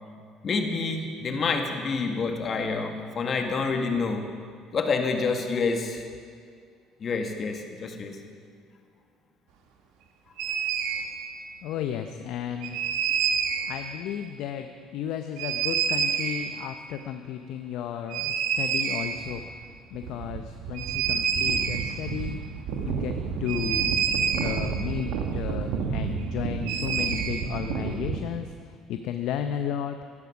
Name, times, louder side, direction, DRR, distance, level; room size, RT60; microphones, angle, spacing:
voice 1, 0.4-4.2 4.7-6.1 7.0-8.2, left 4 dB, 45° left, 4 dB, 1.8 m, -28 dB
sound 1, 10.4-11.1 12.6-13.8 15.4-16.5 18.1-19.4 19.7-19.8 19.9-28.2, right 7 dB, 75° right, 1.3 m, -28 dB
voice 2, 11.6-12.8 13.7-19.4 19.9-22.4 22.8-23.1 23.4-24.0 24.4-30.1, left 9 dB, 70° left, 7 dB, 0.7 m, -33 dB
13.5 x 12.0 x 6.2 m, 2.1 s
supercardioid pair, 70°, 0 cm